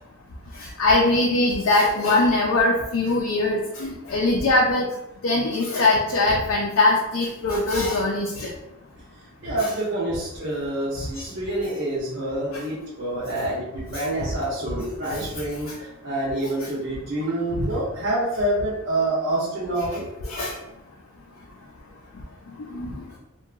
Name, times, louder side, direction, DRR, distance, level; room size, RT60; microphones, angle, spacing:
voice 1, 0.6-4.9 5.2-8.5 9.6-9.7 11.2-11.3 13.9-14.0 16.6-16.7 17.5-17.7 20.2-20.5 22.7-23.0, left 2 dB, 85° left, -2 dB, 0.4 m, -22 dB
voice 2, 9.4-20.0, right 1 dB, 60° right, -7 dB, 0.5 m, -27 dB
2.8 x 2.2 x 2.3 m, 0.88 s
head